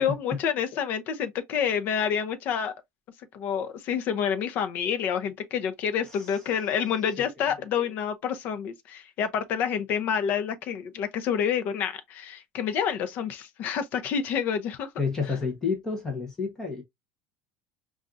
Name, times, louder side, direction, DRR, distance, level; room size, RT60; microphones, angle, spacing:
voice 1, 0.0-2.7 3.3-14.9, left 7 dB, 40° left, 0.6 m, -28 dB
voice 2, 15.0-16.8, left 5 dB, 15° left, 0.9 m, -29 dB
5.2 x 2.4 x 2.4 m
cardioid pair, 165°, 5 cm